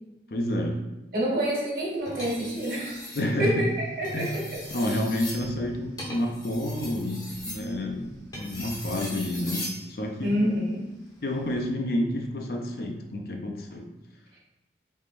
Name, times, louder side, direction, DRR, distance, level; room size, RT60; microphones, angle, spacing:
voice 1, 0.3-0.8 3.2-3.7 4.1-4.4 4.7-10.4 11.2-13.9, left 1 dB, 55° left, 2 dB, 0.5 m, -29 dB
voice 2, 1.1-3.0 3.4-3.7 4.0-4.5 10.2-10.9 14.3-14.4, equal, 55° right, -4 dB, 1.3 m, -27 dB
sound 1, 2.1-3.3 3.9-9.8 11.3-11.6, left 1 dB, 20° left, 0.7 m, -39 dB
4.3 x 3.6 x 2.5 m, 0.98 s
head